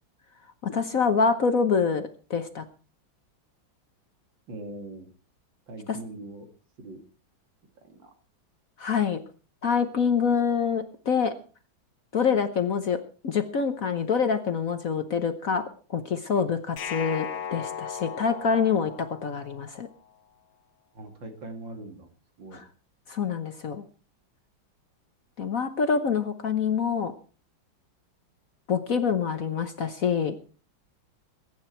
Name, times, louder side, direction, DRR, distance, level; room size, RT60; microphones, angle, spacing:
voice 1, 0.6-2.6 8.8-9.2 9.6-11.3 12.1-15.6 15.9-19.9 22.5-22.6 23.1-23.8 25.4-27.1 28.7-30.4, left 6 dB, 50° left, 9 dB, 1.2 m, -26 dB
voice 2, 4.5-5.1 5.7-6.5 6.8-7.0 7.8-8.1 20.9-22.1 22.4-22.6, right 2 dB, 65° right, 5 dB, 3.0 m, -41 dB
sound 1, 16.8-19.8, left 7 dB, 80° left, 2.1 m, -37 dB
21.5 x 9.7 x 4.5 m, 0.38 s
omnidirectional pair, 2.2 m